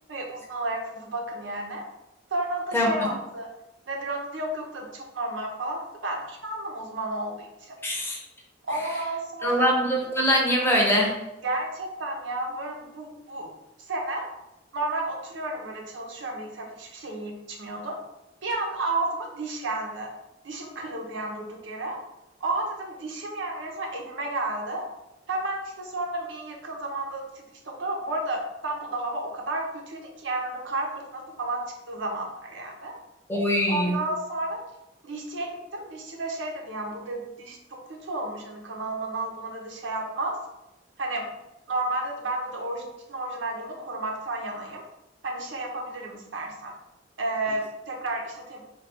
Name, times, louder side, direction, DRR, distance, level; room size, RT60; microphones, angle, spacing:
voice 1, 0.1-1.8 2.3-3.5 3.9-7.8 8.6-9.7 11.4-13.5 13.9-14.3 14.7-18.0 18.4-20.1 20.4-22.0 22.4-24.9 25.3-27.2 27.6-32.9 33.7-34.6 35.0-40.4 41.0-41.3 41.7-42.8 43.1-44.8 45.2-46.7 47.2-48.6, right 2 dB, 85° right, 1 dB, 0.7 m, -32 dB
voice 2, 7.8-8.2 9.4-11.1 33.3-33.9, equal, 15° left, -2 dB, 0.7 m, -22 dB
3.3 x 2.3 x 4.1 m, 0.93 s
head